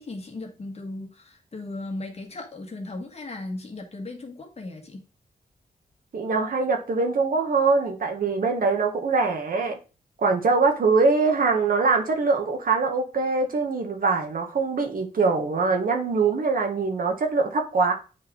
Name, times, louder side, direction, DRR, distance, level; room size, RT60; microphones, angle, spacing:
voice 1, 0.0-5.0, left 2 dB, 40° left, 1.6 m, -37 dB
voice 2, 6.1-9.8 10.2-17.9, right 4 dB, 65° right, 1.4 m, -23 dB
9.6 x 3.7 x 3.5 m
wide cardioid pair, 130°, 16 cm